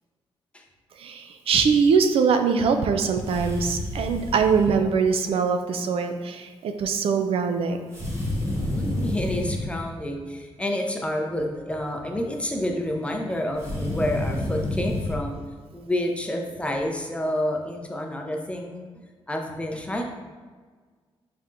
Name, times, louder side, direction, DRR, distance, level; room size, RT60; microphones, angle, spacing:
voice 1, 1.0-7.8, right 5 dB, 65° right, 6 dB, 0.4 m, -22 dB
sound 1, 3.2-4.7 7.9-9.7 13.5-15.2, left 1 dB, 25° right, 1.2 m, -29 dB
voice 2, 8.4-15.4 15.7-18.9 19.3-20.0, left 1 dB, 10° left, 1 dB, 0.6 m, -29 dB
4.2 x 3.5 x 2.5 m, 1.5 s
cardioid pair, 85°, 10 cm